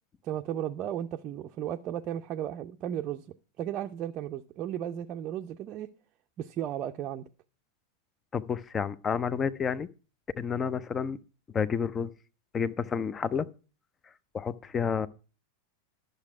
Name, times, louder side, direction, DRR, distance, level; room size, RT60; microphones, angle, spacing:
voice 1, 0.2-3.3 3.6-5.9 6.4-7.2, right 11 dB, 35° right, 4 dB, 0.6 m, -34 dB
voice 2, 8.3-9.9 10.4-11.2 11.5-12.1 12.5-13.5 14.3-15.1, left 6 dB, 20° left, 18 dB, 0.6 m, -30 dB
11.5 x 6.6 x 4.7 m, 0.34 s
figure-of-eight pair, 90°, 0 cm